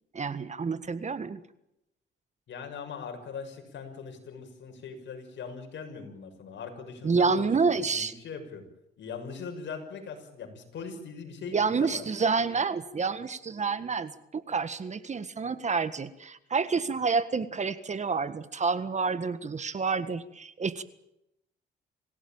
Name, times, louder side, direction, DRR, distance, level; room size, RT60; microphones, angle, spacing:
voice 1, 0.1-1.4 7.0-8.1 11.5-20.8, right 4 dB, 35° right, 13 dB, 1.6 m, -28 dB
voice 2, 2.5-8.6 9.0-12.0, left 5 dB, 65° left, 5 dB, 6.4 m, -41 dB
27.0 x 16.5 x 9.0 m, 0.83 s
cardioid pair, 90°, 20 cm